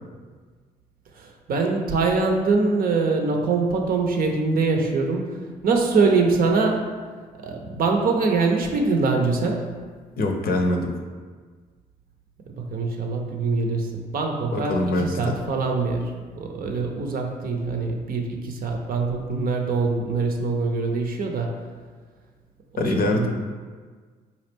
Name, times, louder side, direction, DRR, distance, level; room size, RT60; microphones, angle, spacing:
voice 1, 1.1-6.9 7.4-9.7 12.6-21.6 22.7-23.3, right 4 dB, 50° right, 2 dB, 0.6 m, -23 dB
voice 2, 10.2-10.9 14.5-15.1 22.8-23.3, left 2 dB, 55° left, 2 dB, 0.6 m, -23 dB
4.1 x 2.4 x 3.4 m, 1.5 s
hypercardioid pair, 45°, 19 cm